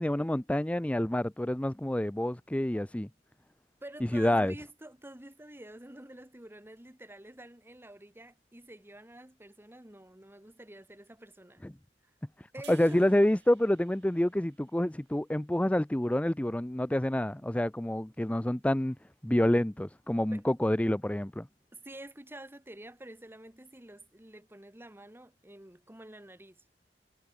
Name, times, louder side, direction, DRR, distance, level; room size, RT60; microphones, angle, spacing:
voice 1, 0.0-3.1 4.1-4.5 11.6-11.7 12.7-19.0 19.2-21.5, left 1 dB, 10° left, 0.5 m, -28 dB
voice 2, 3.8-11.6 12.5-13.1 20.3-20.4 21.7-26.6, right 1 dB, 15° right, 1.7 m, -48 dB
sound 1, 12.6-15.9, right 11 dB, 70° right, 2.8 m, -59 dB
head